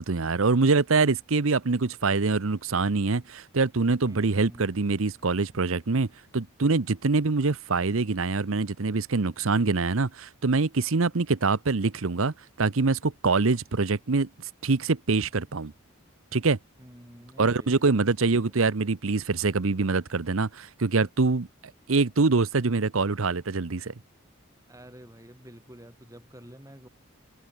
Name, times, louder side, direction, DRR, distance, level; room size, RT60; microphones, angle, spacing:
voice 1, 0.0-6.1 6.3-15.7 16.3-16.6 17.4-21.5 21.9-23.9, right 3 dB, 75° right, 0.9 m, -24 dB
voice 2, 4.0-4.6 16.8-18.6 24.7-26.9, equal, 15° right, 6.2 m, -49 dB
head